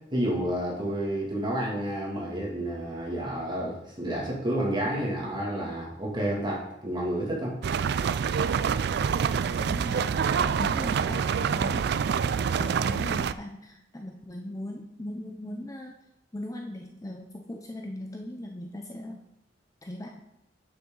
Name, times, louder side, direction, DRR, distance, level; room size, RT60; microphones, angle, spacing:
voice 1, 0.1-7.5, right 1 dB, 25° right, -4 dB, 2.5 m, -30 dB
sound 1, 7.6-13.3, right 6 dB, 60° right, 0.3 m, -26 dB
voice 2, 9.6-10.1 10.5-15.9 16.3-19.2 19.8-20.2, left 1 dB, 20° left, 3 dB, 0.6 m, -39 dB
9.0 x 7.2 x 3.9 m, 0.84 s
head